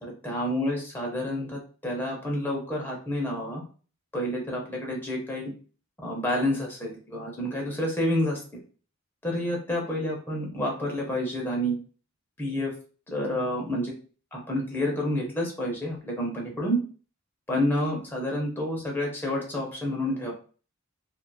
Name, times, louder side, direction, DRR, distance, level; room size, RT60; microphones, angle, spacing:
voice 1, 0.2-3.6 4.1-5.5 6.0-8.6 9.2-11.8 12.4-12.7 13.1-13.9 14.3-16.8 17.5-20.3, left 1 dB, 10° left, -2 dB, 0.7 m, -29 dB
2.7 x 2.4 x 2.2 m, 0.39 s
head